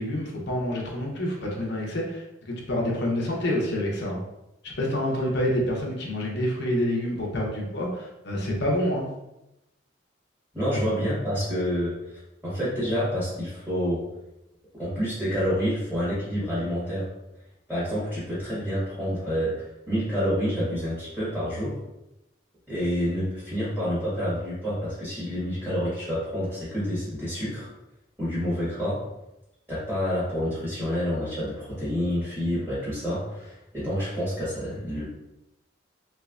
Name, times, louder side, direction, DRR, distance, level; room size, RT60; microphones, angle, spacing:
voice 1, 0.0-4.2 4.6-9.1, left 1 dB, 60° left, -2 dB, 0.7 m, -27 dB
voice 2, 10.5-14.0 14.7-17.1 17.7-21.8 22.7-27.7 28.2-29.0 29.7-35.0, equal, 10° right, -12 dB, 1.3 m, -28 dB
3.2 x 3.1 x 2.4 m, 0.91 s
head